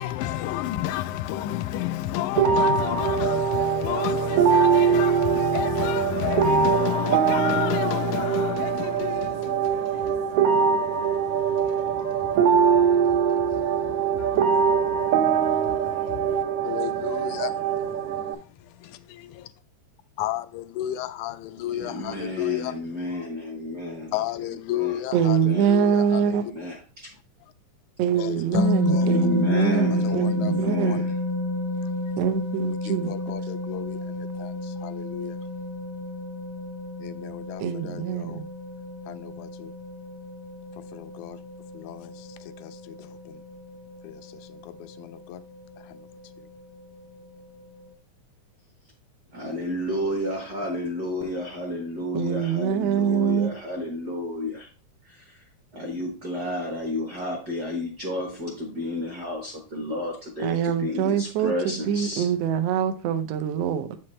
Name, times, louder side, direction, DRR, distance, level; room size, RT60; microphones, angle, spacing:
voice 1, 0.0-19.5 20.2-22.8 23.1-23.3 24.1-26.5 28.2-29.1 30.0-30.5 30.9-31.1 32.8-35.4 37.0-38.4 39.1-39.7 40.8-41.4 41.7-43.4 44.0-45.4 45.8-46.1, left 14 dB, 85° left, 2.0 m, -32 dB
sound 1, 2.4-18.4, right 7 dB, 90° right, 1.3 m, -23 dB
voice 2, 21.7-24.2 24.7-25.0 25.4-25.7 26.3-26.8 29.0-31.1 49.3-54.7 55.0-55.4 55.7-62.3, left 1 dB, 50° right, 1.3 m, -31 dB
voice 3, 25.1-26.4 28.0-31.1 32.2-33.1 37.6-38.5 52.1-53.5 60.4-64.0, right 8 dB, 75° right, 1.6 m, -24 dB
sound 2, 28.5-47.9, left 2 dB, 65° left, 1.2 m, -30 dB
7.5 x 5.9 x 3.2 m
omnidirectional pair, 3.4 m